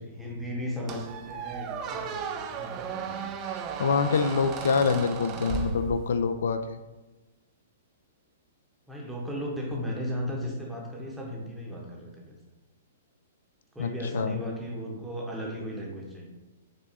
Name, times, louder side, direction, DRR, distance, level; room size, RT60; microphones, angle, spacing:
voice 1, 0.0-3.3 8.9-12.4 13.7-16.3, equal, 5° right, -2 dB, 0.8 m, -36 dB
Squeak, 0.9-6.4, right 6 dB, 25° right, 0.4 m, -35 dB
voice 2, 3.8-6.8 13.8-14.4, left 5 dB, 80° left, 9 dB, 0.3 m, -26 dB
5.0 x 2.3 x 4.1 m, 1.1 s
hypercardioid pair, 155°, 0 cm